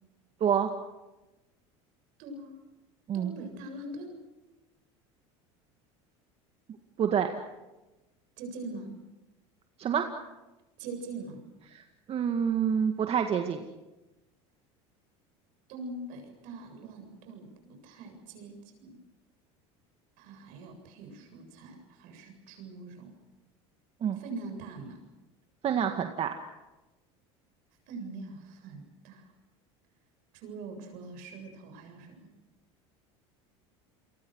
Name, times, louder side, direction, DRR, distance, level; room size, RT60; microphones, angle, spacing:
voice 1, 2.2-2.6 3.1-4.2 8.4-9.0 10.8-11.4 15.7-19.0 20.2-23.1 24.2-25.0 27.9-29.3 30.3-32.3, right 2 dB, 70° right, 6 dB, 7.6 m, -43 dB
voice 2, 7.0-7.3 9.8-10.1 11.7-11.8 12.1-13.6 24.0-24.2 25.6-26.3, right 8 dB, 40° right, 5 dB, 2.1 m, -27 dB
29.5 x 23.5 x 6.5 m, 1.1 s
supercardioid pair, 100°, 15 cm